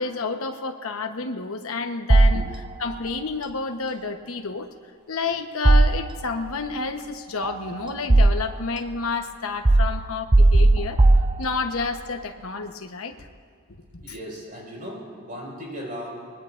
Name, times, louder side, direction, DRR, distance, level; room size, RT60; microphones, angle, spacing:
voice 1, 0.0-2.4 2.8-4.7 5.1-11.0 11.4-13.2 13.9-14.0, left 4 dB, 75° left, 6 dB, 1.1 m, -30 dB
sound 1, 2.1-3.0 5.6-6.5 7.4-8.7 9.6-11.9, right 2 dB, 20° right, 0.5 m, -18 dB
voice 2, 14.0-16.3, equal, 40° right, -3 dB, 5.2 m, -37 dB
24.5 x 21.0 x 2.6 m, 2.2 s
head